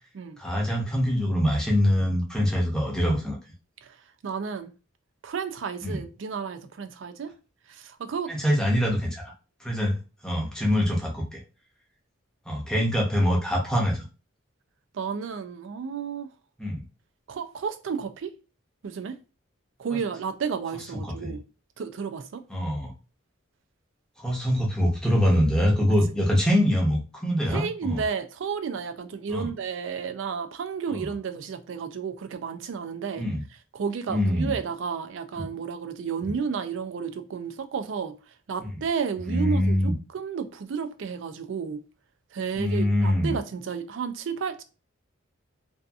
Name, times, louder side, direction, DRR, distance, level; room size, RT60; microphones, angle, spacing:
voice 1, 0.4-3.4 5.8-6.0 8.3-9.3 9.6-11.4 12.5-14.0 16.6-16.8 19.9-20.0 20.7-21.4 22.5-22.9 24.2-28.0 29.3-29.5 30.9-31.1 33.2-33.4 34.1-34.6 35.4-35.5 36.2-36.3 38.6-38.8 39.3-39.9 42.6-43.4, equal, 5° left, 0.7 m, -24 dB
voice 2, 4.2-4.7 5.2-7.3 7.8-8.3 14.9-16.3 17.3-18.3 18.8-19.2 19.8-21.4 21.8-22.4 27.5-33.2 33.7-38.1 38.5-41.8 42.3-44.6, right 6 dB, 65° right, 0.4 m, -32 dB
2.6 x 2.4 x 2.3 m
head